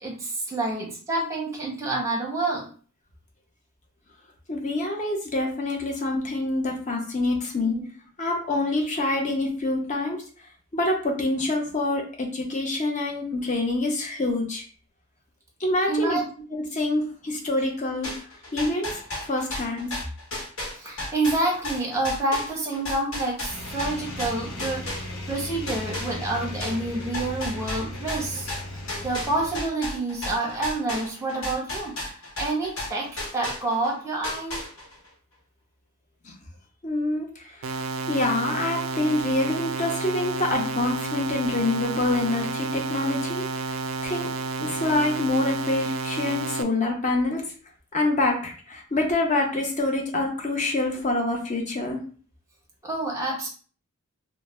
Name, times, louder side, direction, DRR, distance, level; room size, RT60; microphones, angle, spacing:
voice 1, 0.0-2.7 7.6-7.8 15.9-16.2 20.8-28.5 29.0-34.6 52.8-53.5, right 2 dB, 15° right, -2 dB, 0.7 m, -28 dB
voice 2, 4.5-7.8 8.2-10.2 10.7-14.6 15.6-16.2 16.5-18.1 18.5-19.0 19.3-20.0 36.2-36.3 36.8-43.5 44.0-44.3 44.6-47.4 47.9-52.0, left 2 dB, 35° left, 1 dB, 0.7 m, -26 dB
sound 1, 18.0-25.4 25.7-33.9 34.2-35.1, left 1 dB, 60° left, 1.3 m, -34 dB
sound 2, 23.5-29.6, left 1 dB, 75° left, 0.7 m, -36 dB
sound 3, 37.6-46.6, right 4 dB, 60° right, 0.3 m, -31 dB
2.6 x 2.1 x 3.3 m, 0.41 s
head